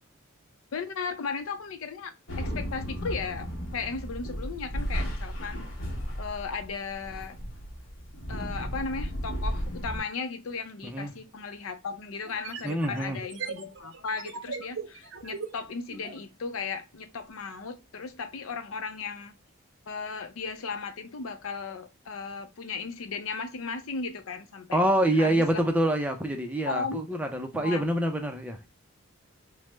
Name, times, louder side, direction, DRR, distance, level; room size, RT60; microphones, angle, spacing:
voice 1, 0.7-2.1 2.4-5.6 6.2-7.4 8.3-19.3 19.9-24.8 25.2-25.6 26.6-27.0 27.5-27.8, left 5 dB, 85° left, 0.5 m, -36 dB
sound 1, 2.3-10.0, equal, 65° left, 0.9 m, -34 dB
sound 2, 12.2-16.2, right 5 dB, 65° right, 0.5 m, -39 dB
voice 2, 12.6-13.2 24.7-28.7, right 1 dB, 5° right, 0.4 m, -26 dB
3.1 x 2.0 x 3.1 m
head